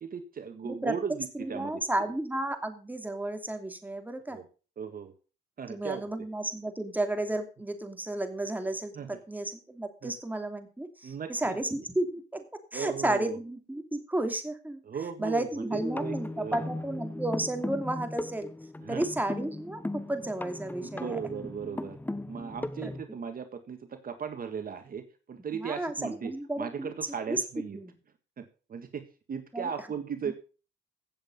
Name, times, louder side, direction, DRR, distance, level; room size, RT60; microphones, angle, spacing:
voice 1, 0.0-1.7 4.3-4.4 4.8-5.1 5.6-6.0 9.0-9.1 10.0-10.2 11.0-11.6 12.7-13.4 14.9-16.7 18.8-19.1 20.8-22.0 22.3-26.3 26.6-27.8 28.4-30.3, right 7 dB, 45° right, 8 dB, 1.6 m, -37 dB
voice 2, 0.6-0.9 1.3-4.4 5.7-12.4 12.7-14.8 15.2-18.5 18.9-21.2 22.8-22.9 25.5-26.9 27.3-27.9 29.5-29.7 30.2-30.3, right 1 dB, 10° right, 6 dB, 2.7 m, -33 dB
sound 1, 15.7-23.0, left 2 dB, 10° left, 0.8 m, -37 dB
16.0 x 7.7 x 5.4 m, 0.36 s
cardioid pair, 90°, 20 cm